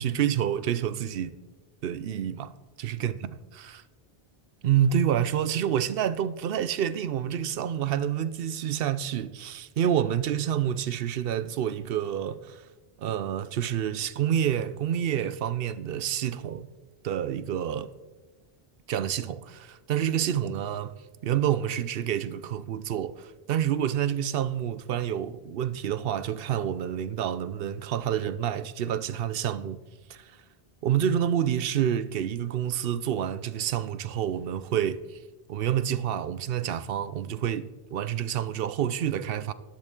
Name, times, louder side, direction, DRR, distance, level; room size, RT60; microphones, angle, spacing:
voice 1, 0.0-1.3 1.8-2.5 2.8-3.8 4.6-12.6 13.0-16.7 17.0-17.9 18.9-20.9 21.2-29.8 30.1-30.4 30.8-35.2 35.5-39.5, right 9 dB, 70° right, 0.7 m, -28 dB
12.5 x 10.5 x 3.7 m
omnidirectional pair, 1.0 m